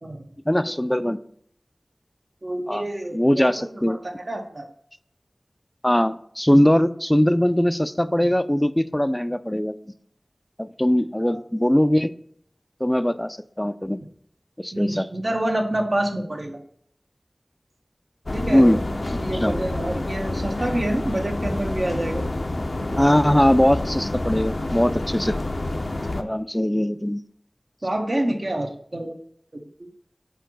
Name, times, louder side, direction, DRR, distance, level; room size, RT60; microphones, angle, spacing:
voice 1, 0.5-1.2 2.7-2.9 3.1-4.0 5.8-9.8 10.6-12.1 12.8-14.0 14.6-15.1 18.5-18.8 19.1-19.5 23.0-25.4 26.2-27.2, equal, 15° left, 13 dB, 0.4 m, -21 dB
voice 2, 2.4-3.5 3.9-4.0 4.3-4.7 11.3-11.4 14.7-16.6 18.3-18.8 19.2-22.2 27.8-29.2 29.5-29.6, right 1 dB, 60° right, 2 dB, 1.1 m, -27 dB
sound 1, 18.3-26.2, left 2 dB, 65° left, 0.6 m, -28 dB
4.6 x 4.6 x 6.0 m, 0.65 s
wide cardioid pair, 45°, 0 cm